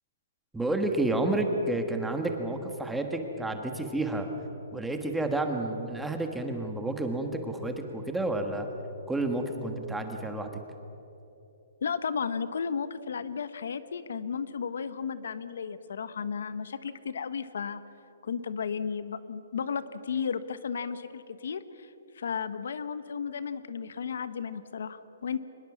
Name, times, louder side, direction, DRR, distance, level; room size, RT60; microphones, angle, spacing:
voice 1, 0.5-4.3 4.7-8.7 9.1-10.5, right 2 dB, 5° right, 4 dB, 1.4 m, -30 dB
voice 2, 11.8-17.8 18.2-25.4, left 6 dB, 70° left, 13 dB, 1.1 m, -34 dB
23.5 x 21.0 x 7.2 m, 3.0 s
hypercardioid pair, 170°, 0 cm